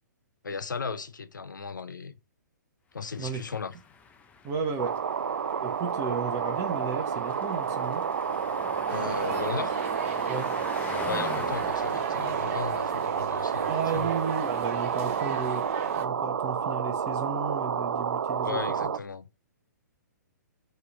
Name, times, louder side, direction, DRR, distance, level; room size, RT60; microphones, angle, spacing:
voice 1, 0.4-2.1 2.9-3.7 8.9-9.7 11.1-14.1 18.4-19.2, left 5 dB, 85° left, 0.8 m, -35 dB
sound 1, 3.0-16.0, left 5 dB, 15° left, 0.8 m, -44 dB
voice 2, 4.4-5.0 5.6-8.1 10.3-10.5 13.7-18.9, right 5 dB, 30° right, 1.3 m, -34 dB
sound 2, 4.8-19.0, right 7 dB, 75° right, 0.5 m, -30 dB
sound 3, 8.9-16.1, right 8 dB, 45° right, 1.0 m, -38 dB
6.4 x 3.5 x 6.0 m
hypercardioid pair, 125°, 10 cm